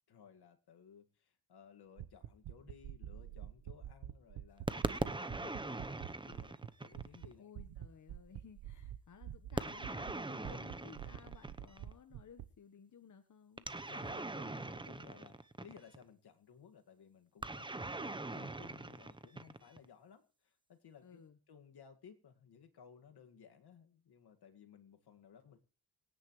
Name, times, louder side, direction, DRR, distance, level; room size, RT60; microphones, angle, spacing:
voice 1, 0.1-7.5 13.7-21.2 21.5-25.6, left 7 dB, 65° left, 5 dB, 2.2 m, -59 dB
sound 1, 2.0-6.7 6.9-7.3 7.6-10.1 10.4-12.5, right 12 dB, 80° right, 1.1 m, -46 dB
sound 2, 4.7-7.3 9.6-11.9 13.6-16.0 17.4-19.9, right 2 dB, 10° right, 0.9 m, -41 dB
voice 2, 7.4-13.7 21.0-21.4, left 7 dB, 45° left, 7 dB, 1.3 m, -58 dB
26.5 x 10.0 x 3.2 m, 0.36 s
cardioid pair, 100°, 42 cm